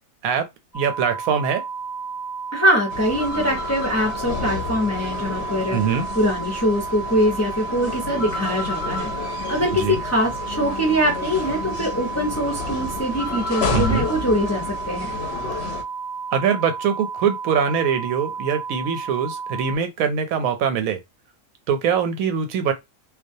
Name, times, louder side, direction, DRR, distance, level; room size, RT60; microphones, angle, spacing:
sound 1, 0.7-19.8, right 5 dB, 25° right, 0.7 m, -32 dB
voice 1, 0.7-1.6 5.7-6.0 9.7-10.0 13.7-14.1 16.3-21.0 21.7-22.7, right 7 dB, 80° right, 1.0 m, -23 dB
voice 2, 2.5-5.8 6.1-15.2, equal, 20° left, 0.5 m, -23 dB
sound 2, 2.9-15.8, left 4 dB, 60° left, 0.8 m, -30 dB
2.3 x 2.2 x 2.6 m
omnidirectional pair, 1.4 m